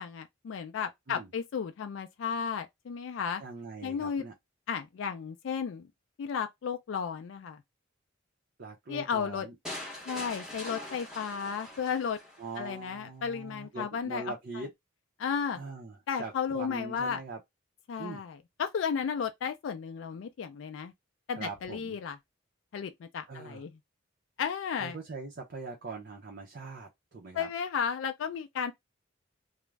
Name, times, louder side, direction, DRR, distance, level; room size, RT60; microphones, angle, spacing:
voice 1, 0.0-3.4 3.8-4.2 4.7-5.9 6.2-7.6 8.9-9.5 10.1-12.2 12.6-14.2 14.5-14.6 15.2-15.6 16.1-17.2 17.9-20.9 21.3-22.2 22.7-23.8 24.4-25.0 27.3-28.7, left 6 dB, 70° left, 0.3 m, -34 dB
voice 2, 3.4-4.3 8.6-9.6 12.4-14.7 15.5-17.4 18.0-18.2 21.3-22.0 23.3-23.6 24.8-27.5, right 3 dB, 50° right, 0.6 m, -42 dB
sound 1, 9.6-12.6, left 1 dB, 5° right, 0.7 m, -42 dB
2.4 x 2.0 x 3.2 m
head